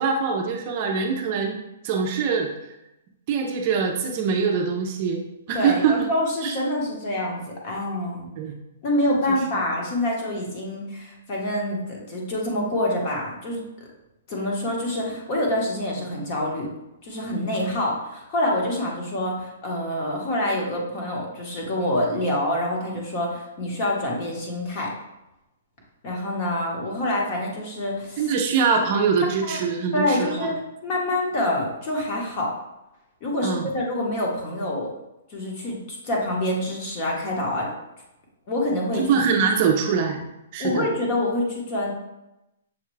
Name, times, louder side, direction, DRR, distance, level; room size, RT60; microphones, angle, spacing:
voice 1, 0.0-1.6 1.8-2.5 3.3-5.2 5.5-6.0 6.4-6.5 8.4-8.5 28.2-30.5 33.4-33.7 39.0-40.3 40.5-40.9, right 5 dB, 35° right, 2 dB, 0.5 m, -23 dB
voice 2, 5.5-8.3 8.8-13.6 14.3-16.7 17.0-24.9 26.0-28.2 29.4-29.6 29.9-30.5 30.8-32.5 33.2-34.9 35.3-37.7 38.5-39.2 40.6-41.9, left 1 dB, 35° left, -2 dB, 1.1 m, -26 dB
6.4 x 2.3 x 3.1 m, 0.92 s
hypercardioid pair, 160°, 0 cm